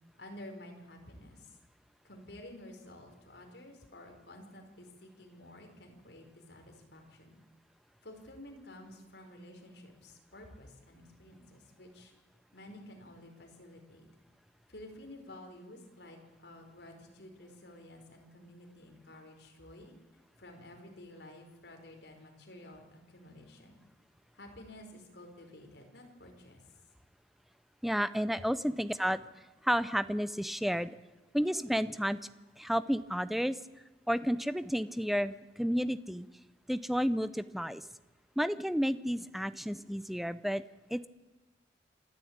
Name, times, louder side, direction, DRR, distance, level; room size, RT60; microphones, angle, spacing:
voice 1, 0.2-1.6 2.0-7.3 8.0-12.1 12.5-14.1 14.7-19.9 20.4-23.8 24.3-26.6, left 1 dB, 65° left, 3 dB, 4.6 m, -51 dB
voice 2, 27.8-29.2 29.6-30.9 31.3-32.2 32.6-33.6 34.1-36.3 36.7-37.8 38.4-40.6 40.9-41.1, equal, ahead, 14 dB, 0.6 m, -31 dB
27.0 x 13.0 x 8.8 m, 1.2 s
head